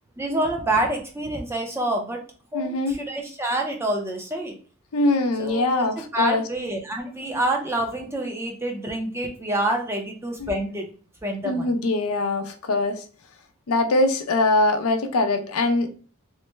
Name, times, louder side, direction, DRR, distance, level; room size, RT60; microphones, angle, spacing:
voice 1, 0.2-2.2 2.5-4.5 5.4-5.8 6.1-10.9 11.2-11.7, right 1 dB, 10° right, 2 dB, 0.5 m, -27 dB
voice 2, 2.5-3.0 4.9-6.4 10.4-10.5 11.4-13.0 13.7-15.9, left 2 dB, 85° left, 7 dB, 0.5 m, -22 dB
3.1 x 2.1 x 3.1 m, 0.39 s
head